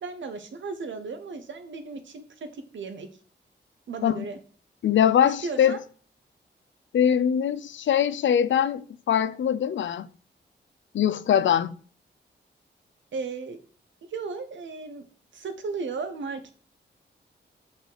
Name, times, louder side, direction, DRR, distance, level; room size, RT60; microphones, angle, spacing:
voice 1, 0.0-3.1 3.9-4.4 5.2-5.8 13.1-13.6 14.1-15.1 15.3-16.5, right 4 dB, 85° right, 0.9 m, -35 dB
voice 2, 4.8-5.8 6.9-10.1 10.9-11.8, left 9 dB, 90° left, 0.4 m, -22 dB
6.6 x 4.9 x 3.9 m
wide cardioid pair, 95°, 19 cm